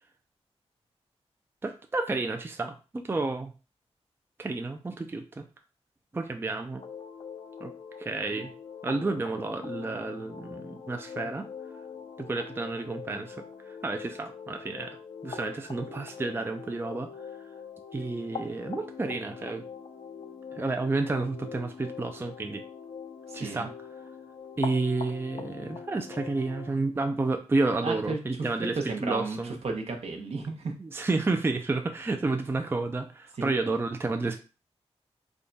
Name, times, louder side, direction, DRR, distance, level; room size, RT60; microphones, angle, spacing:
voice 1, 1.6-3.5 4.4-5.4 6.1-6.8 7.6-7.7 8.0-8.5 8.8-11.5 12.2-15.0 15.2-17.1 17.9-19.7 20.5-22.6 23.3-23.7 24.6-29.6 30.8-34.4, right 3 dB, 20° right, 6 dB, 0.4 m, -30 dB
sound 1, 6.8-26.7, left 6 dB, 50° left, 0.5 m, -43 dB
voice 2, 23.3-23.7 27.8-28.5 28.7-30.7 33.4-33.5, right 3 dB, 65° right, 3 dB, 0.8 m, -33 dB
3.6 x 2.3 x 3.9 m, 0.33 s
wide cardioid pair, 95°, 11 cm